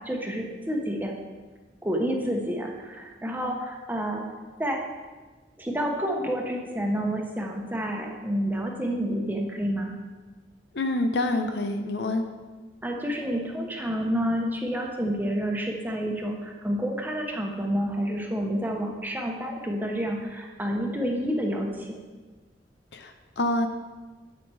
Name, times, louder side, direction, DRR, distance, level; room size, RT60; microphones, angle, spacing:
voice 1, 0.0-1.1 1.8-4.2 4.6-4.8 5.6-9.9 12.8-22.0, equal, 10° right, 1 dB, 1.1 m, -29 dB
voice 2, 10.7-12.2 22.9-23.7, left 2 dB, 70° left, 6 dB, 0.8 m, -27 dB
8.2 x 7.4 x 4.8 m, 1.3 s
head